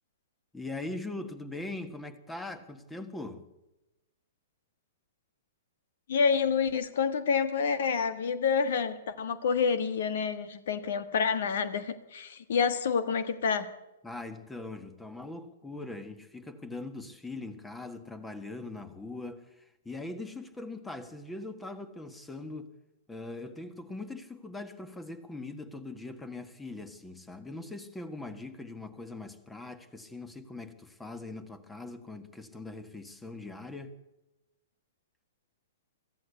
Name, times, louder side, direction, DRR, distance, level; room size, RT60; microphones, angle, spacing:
voice 1, 0.5-3.4 14.0-22.7 23.1-33.9, left 2 dB, 5° left, 1.6 m, -41 dB
voice 2, 6.1-13.7, left 6 dB, 55° left, 1.4 m, -28 dB
23.5 x 14.5 x 8.2 m
figure-of-eight pair, 110°, 0 cm